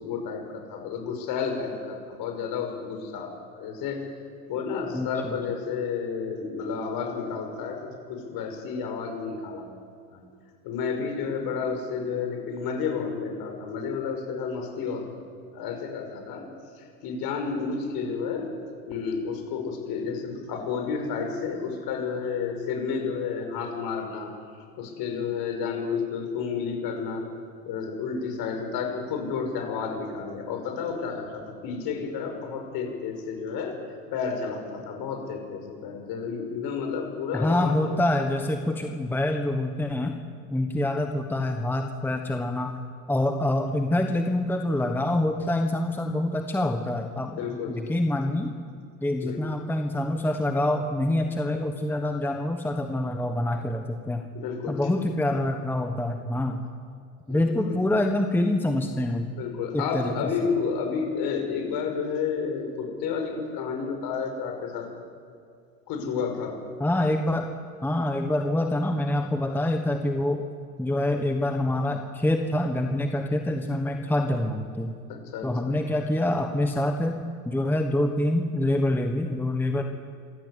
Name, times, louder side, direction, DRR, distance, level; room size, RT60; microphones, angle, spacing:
voice 1, 0.0-4.2 4.5-7.8 8.1-9.7 10.1-10.2 10.6-15.2 15.5-16.4 16.7-18.5 18.9-24.3 24.8-27.3 27.6-33.8 34.1-37.8 47.4-47.8 49.2-49.4 54.3-55.0 57.3-57.8 59.3-64.9 65.9-66.6 75.1-75.8, left 5 dB, 50° left, 4 dB, 6.1 m, -31 dB
voice 2, 4.9-5.3 37.3-40.2 40.5-42.8 43.1-47.4 47.7-48.5 49.0-54.3 54.7-56.6 57.3-59.3 59.7-60.1 66.8-67.5 67.8-70.4 70.8-74.9 75.4-79.8, left 1 dB, 5° left, 5 dB, 1.2 m, -26 dB
27.0 x 14.0 x 8.2 m, 2.4 s
hypercardioid pair, 105°, 47 cm